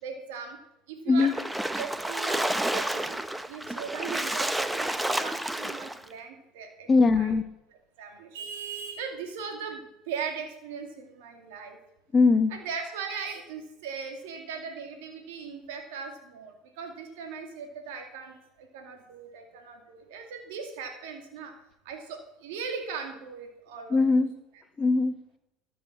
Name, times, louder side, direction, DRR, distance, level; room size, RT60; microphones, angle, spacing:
voice 1, 0.0-0.6 0.9-1.3 1.8-3.2 3.5-6.9 7.1-7.3 8.0-9.8 10.1-11.8 12.5-21.5 21.8-24.0, right 6 dB, 80° right, 4 dB, 2.3 m, -39 dB
Splash splatter, 1.2-6.0, right 1 dB, 5° right, 0.8 m, -30 dB
voice 2, 6.9-7.4 12.1-12.5 23.9-24.3 24.8-25.4, left 4 dB, 30° left, 8 dB, 1.4 m, -21 dB
13.0 x 7.6 x 7.3 m, 0.85 s
supercardioid pair, 100°, 0 cm